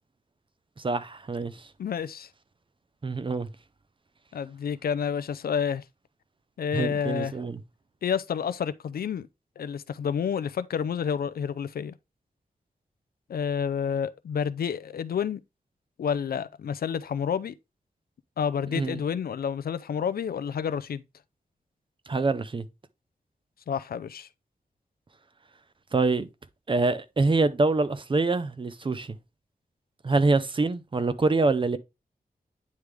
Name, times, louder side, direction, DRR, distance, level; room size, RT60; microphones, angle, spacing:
voice 1, 0.8-1.5 3.0-3.5 6.7-7.6 18.7-19.0 22.1-22.6 25.9-26.3 26.7-29.2 30.0-31.8, right 3 dB, 35° right, 0.6 m, -25 dB
voice 2, 1.8-2.3 4.3-5.8 6.6-7.3 8.0-9.3 9.6-11.9 13.3-15.4 16.0-17.6 18.4-21.0 23.7-24.3, left 7 dB, 80° left, 0.5 m, -29 dB
9.4 x 3.3 x 3.4 m
wide cardioid pair, 110°, 15 cm